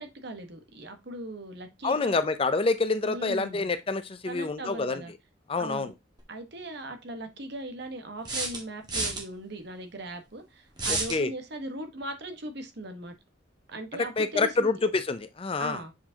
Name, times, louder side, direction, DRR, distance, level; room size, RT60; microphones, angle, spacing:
voice 1, 0.0-2.2 3.0-3.7 4.2-5.1 5.6-5.9 6.3-13.1 13.7-14.8 15.6-15.9, right 1 dB, 55° right, 1.3 m, -39 dB
voice 2, 1.8-5.0 5.5-5.9 10.9-11.3 14.2-15.8, left 3 dB, 30° left, 0.5 m, -27 dB
sound 1, 6.2-6.3 8.2-9.2 10.8-11.2, right 2 dB, 20° right, 1.5 m, -30 dB
7.5 x 4.7 x 2.8 m
head